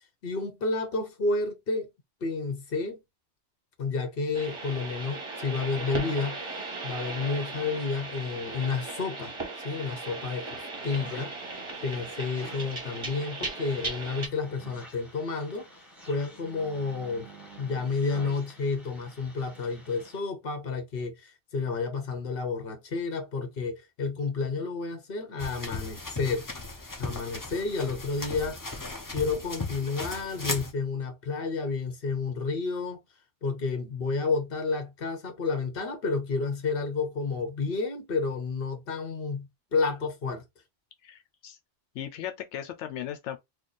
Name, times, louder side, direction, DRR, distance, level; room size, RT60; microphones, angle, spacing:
voice 1, 0.2-1.9 2.2-3.0 3.8-6.4 6.8-9.3 9.6-11.3 11.8-15.7 16.1-17.3 17.6-26.4 27.0-28.6 29.1-33.0 33.4-40.4, left 4 dB, 55° left, 1.1 m, -30 dB
sound 1, 4.3-14.3, right 3 dB, 30° right, 0.9 m, -37 dB
sound 2, 10.7-20.2, right 1 dB, ahead, 1.3 m, -50 dB
sound 3, 25.4-30.7, left 2 dB, 20° left, 0.6 m, -37 dB
voice 2, 41.0-41.6 41.9-43.4, left 10 dB, 85° left, 0.9 m, -37 dB
3.2 x 2.3 x 4.0 m
omnidirectional pair, 1.2 m